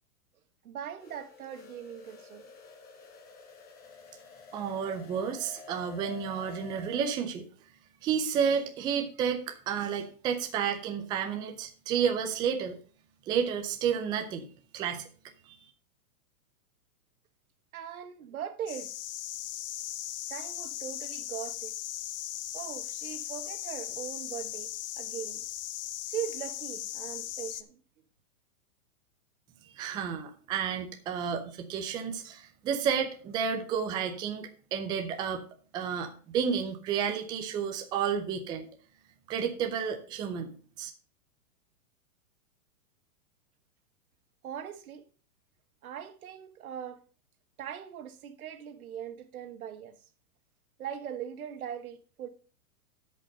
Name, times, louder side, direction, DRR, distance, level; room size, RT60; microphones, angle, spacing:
voice 1, 0.6-2.5 17.7-18.9 20.3-21.7 22.5-24.7 25.0-25.4 26.0-27.8 44.4-45.0 45.8-47.0 47.6-49.9 50.8-52.3, right 9 dB, 80° right, 1.5 m, -40 dB
sound 1, 1.0-7.2, left 4 dB, 20° left, 1.4 m, -50 dB
voice 2, 4.5-7.5 8.0-12.8 13.3-14.5 14.7-15.0 15.5-15.6 29.7-35.4 35.7-38.7 39.3-40.9, right 7 dB, 10° right, 0.5 m, -31 dB
sound 2, 18.7-27.6, left 13 dB, 40° left, 0.7 m, -38 dB
12.5 x 5.3 x 5.2 m
hypercardioid pair, 150°, 43 cm